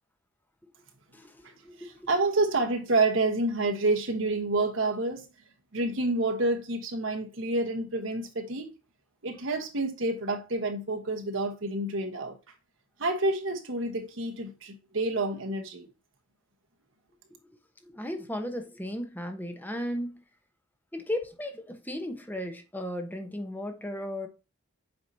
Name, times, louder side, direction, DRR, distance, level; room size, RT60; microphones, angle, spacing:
voice 1, 1.1-2.1 17.3-17.4 17.8-20.2 20.9-24.3, left 1 dB, 10° left, 1.0 m, -35 dB
voice 2, 1.8-5.3 5.7-8.7 9.2-12.4 13.0-15.9, right 2 dB, 65° right, 1.2 m, -28 dB
7.9 x 4.7 x 2.8 m
head